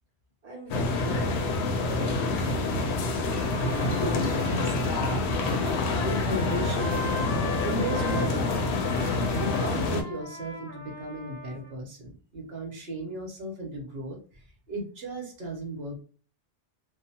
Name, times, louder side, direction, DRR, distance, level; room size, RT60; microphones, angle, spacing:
voice 1, 0.4-3.6, right 2 dB, 50° right, -2 dB, 0.5 m, -42 dB
sound 1, 0.7-10.0, left 3 dB, 75° left, 0.8 m, -27 dB
Trumpet, 3.2-11.7, left 1 dB, 15° left, 0.4 m, -40 dB
voice 2, 3.9-16.0, right 1 dB, 65° right, 0 dB, 1.1 m, -36 dB
2.9 x 2.0 x 2.7 m, 0.39 s
omnidirectional pair, 1.1 m